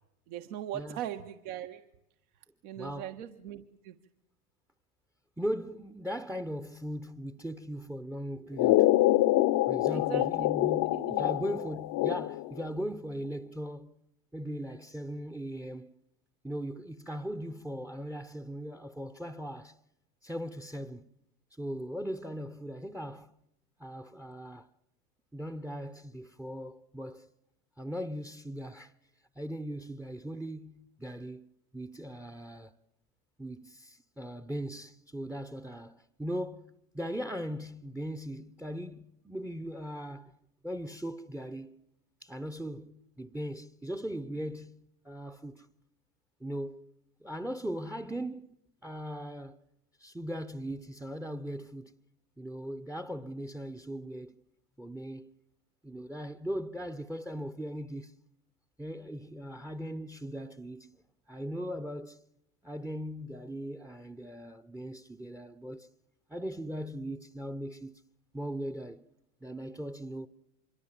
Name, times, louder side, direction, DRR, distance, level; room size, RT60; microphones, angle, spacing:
voice 1, 0.3-1.8 2.6-4.0 9.9-11.4, right 11 dB, 65° right, 1.6 m, -40 dB
voice 2, 2.8-3.2 5.4-8.9 9.7-14.0 14.3-15.9 16.4-19.8 20.2-21.1 21.6-23.3 23.8-24.7 25.3-27.3 27.8-28.9 29.4-32.7 33.4-40.3 40.6-41.8 42.2-44.8 45.0-45.7 46.4-46.9 47.2-49.6 50.0-51.9 52.4-54.4 54.8-55.3 55.8-58.1 58.8-60.9 61.3-62.2 62.6-65.9 66.3-68.0 68.3-69.1 69.4-70.3, equal, 5° right, 0.8 m, -39 dB
sound 1, 8.6-12.6, left 16 dB, 45° left, 0.9 m, -26 dB
26.0 x 23.0 x 7.6 m
hypercardioid pair, 90°, 48 cm